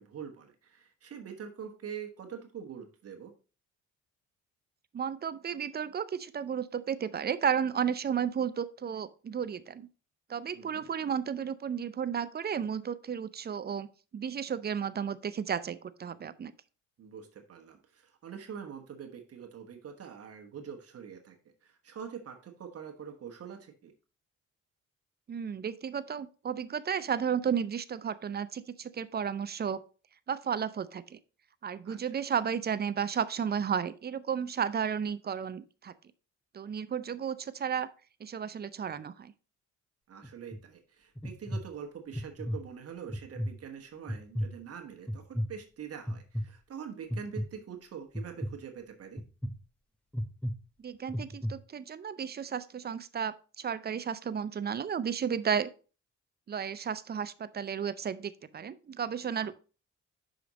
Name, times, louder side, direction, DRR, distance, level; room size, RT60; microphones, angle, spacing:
voice 1, 0.0-3.3 10.5-10.9 17.0-23.9 31.8-32.2 40.1-49.2 59.4-59.5, right 7 dB, 50° right, 4 dB, 1.2 m, -44 dB
voice 2, 4.9-9.9 10.3-13.9 14.1-16.5 25.3-29.8 30.3-31.2 31.6-35.9 36.5-37.9 38.2-39.3 50.8-55.7 56.5-59.5, right 7 dB, 35° right, 15 dB, 0.5 m, -33 dB
sound 1, 40.2-40.6 41.2-41.6 42.1-42.6 43.1-43.5 44.1-44.5 45.1-45.5 46.1-46.4 47.1-47.5 48.1-48.5 49.2-49.5 50.1-50.5 51.1-51.5, equal, 5° left, 0.8 m, -33 dB
5.9 x 5.1 x 4.0 m, 0.35 s
cardioid pair, 90°, 30 cm